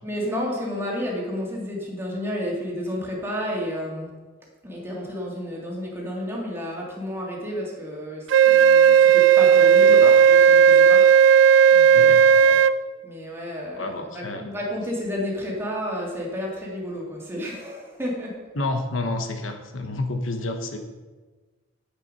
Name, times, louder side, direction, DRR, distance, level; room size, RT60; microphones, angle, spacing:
voice 1, 0.0-4.1 4.6-11.4 11.7-12.6 13.0-18.4, equal, 10° right, -3 dB, 2.5 m, -31 dB
Wind instrument woodwind instrument, 8.3-12.8, right 8 dB, 70° right, 0.4 m, -14 dB
voice 2, 9.8-10.2 11.9-12.2 13.8-14.5 18.5-20.8, left 2 dB, 80° left, 6 dB, 1.2 m, -29 dB
10.0 x 8.3 x 5.5 m, 1.3 s
head